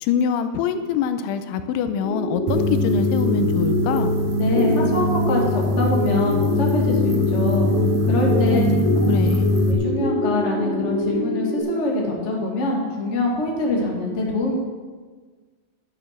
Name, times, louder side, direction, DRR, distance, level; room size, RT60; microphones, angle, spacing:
voice 1, 0.0-4.1 8.3-8.8 9.1-9.5, left 8 dB, 85° left, 9 dB, 3.0 m, -24 dB
sound 1, 2.0-11.6, left 2 dB, 45° right, 5.1 m, -25 dB
sound 2, 2.5-9.7, left 1 dB, 85° right, 1.5 m, -22 dB
voice 2, 4.4-7.7 8.1-8.6 9.0-9.3 9.6-14.5, left 2 dB, 40° left, -2 dB, 0.9 m, -24 dB
11.5 x 9.2 x 6.0 m, 1.5 s
omnidirectional pair, 5.4 m